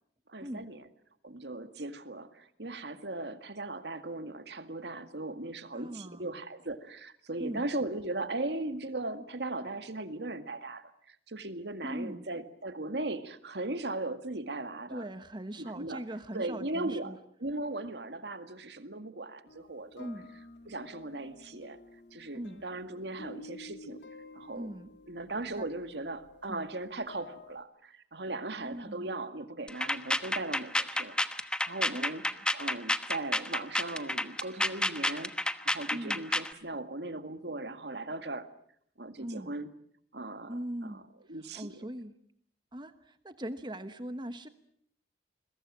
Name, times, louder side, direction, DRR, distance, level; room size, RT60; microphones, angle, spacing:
voice 1, 0.3-0.8 1.2-15.1 15.6-16.0 16.3-20.1 20.7-21.8 22.1-24.0 24.3-24.7 25.1-32.2 32.5-38.5 39.0-39.7 40.1-41.0 41.3-41.8, right 2 dB, 75° right, 9 dB, 2.0 m, -38 dB
voice 2, 5.7-6.3 7.4-7.7 11.8-12.3 14.9-17.2 20.0-20.3 22.3-22.6 24.5-24.9 25.6-25.7 26.5-26.7 28.6-29.1 31.9-32.0 35.9-36.2 39.2-39.6 40.5-41.0 41.3-42.1 42.7-44.5, right 1 dB, 25° right, 10 dB, 1.1 m, -40 dB
sound 1, 19.5-27.6, left 3 dB, 90° left, 2.2 m, -52 dB
sound 2, 29.7-36.5, left 1 dB, 5° left, 1.1 m, -30 dB
29.5 x 22.0 x 7.5 m, 0.66 s
head